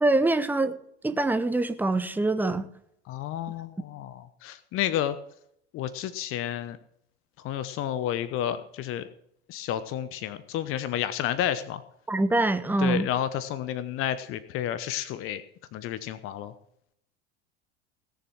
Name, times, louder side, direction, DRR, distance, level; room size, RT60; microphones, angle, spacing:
voice 1, 0.0-0.7 1.0-2.7 12.1-13.1, right 2 dB, 5° right, 10 dB, 1.1 m, -24 dB
voice 2, 3.1-5.2 5.7-6.8 7.4-9.1 9.5-11.8 12.8-15.4 15.7-16.5, left 11 dB, 40° left, 14 dB, 0.9 m, -31 dB
18.0 x 6.9 x 6.2 m, 0.72 s
figure-of-eight pair, 80°, 34 cm